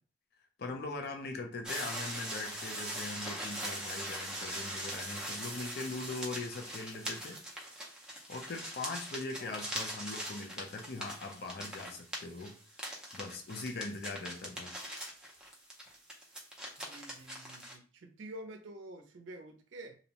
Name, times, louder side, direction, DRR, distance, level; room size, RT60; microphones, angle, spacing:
voice 1, 0.6-7.4 8.3-12.6 13.1-14.7, left 3 dB, 50° left, 4 dB, 0.5 m, -41 dB
sound 1, 1.6-17.8, right 1 dB, 5° right, 0.5 m, -41 dB
voice 2, 16.8-20.0, right 1 dB, 70° right, 5 dB, 0.5 m, -48 dB
2.6 x 2.0 x 2.8 m, 0.40 s
head